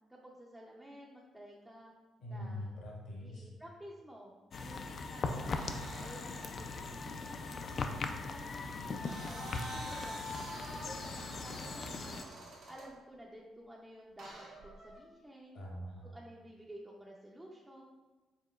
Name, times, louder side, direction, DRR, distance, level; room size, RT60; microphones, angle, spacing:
voice 1, 0.1-1.9 2.2-2.7 3.2-6.9 7.2-9.4 9.7-10.3 10.7-15.6 16.1-17.8, equal, 10° right, -3 dB, 0.5 m, -53 dB
voice 2, 2.2-3.5 15.5-16.1, left 1 dB, 75° left, -3 dB, 1.4 m, -43 dB
sound 1, 4.5-12.2, left 3 dB, 50° left, 0.3 m, -39 dB
sound 2, 5.5-6.6 8.7-12.9 14.2-15.0, right 2 dB, 80° right, 1.1 m, -49 dB
4.9 x 3.6 x 2.3 m, 1.2 s
cardioid pair, 90°, 0 cm